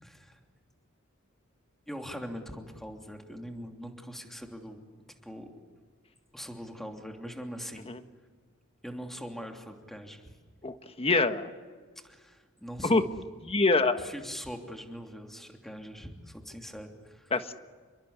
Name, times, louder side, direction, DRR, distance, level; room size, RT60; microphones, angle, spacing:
voice 1, 0.0-0.4 1.9-4.8 5.2-5.5 6.3-7.9 8.8-10.4 12.0-13.1 14.0-17.3, equal, ahead, 3 dB, 3.0 m, -42 dB
voice 2, 10.6-11.5 12.8-13.0 13.5-14.1 17.3-17.5, left 3 dB, 30° left, 8 dB, 1.5 m, -25 dB
29.0 x 23.0 x 8.2 m, 1.5 s
head